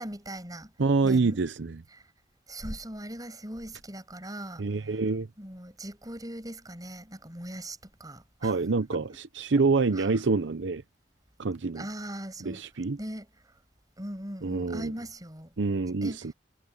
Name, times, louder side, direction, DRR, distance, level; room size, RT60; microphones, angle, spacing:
voice 1, 0.0-0.7 1.0-1.4 1.9-2.1 2.5-4.6 5.4-8.6 8.9-9.0 9.9-10.1 11.7-12.6 13.0-13.3 14.0-15.5 16.0-16.3, right 1 dB, 20° right, 7.8 m, -40 dB
voice 2, 0.8-1.8 4.6-5.3 8.4-9.1 9.4-10.8 11.4-11.8 12.4-13.0 14.4-14.9 15.6-16.3, right 4 dB, 80° right, 0.7 m, -26 dB
head